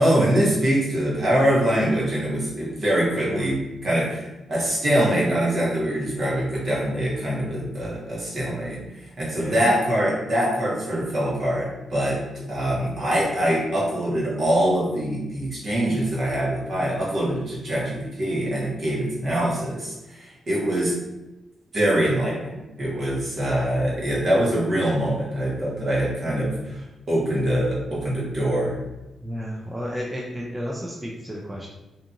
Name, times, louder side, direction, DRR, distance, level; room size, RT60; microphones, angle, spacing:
voice 1, 0.0-20.9 21.7-26.8 27.1-28.8, right 1 dB, 50° right, -5 dB, 1.0 m, -24 dB
voice 2, 9.4-9.7 19.2-19.3 23.4-23.7 29.2-31.7, equal, 10° right, -3 dB, 0.3 m, -33 dB
2.8 x 2.5 x 2.5 m, 1.0 s
wide cardioid pair, 130°, 0 cm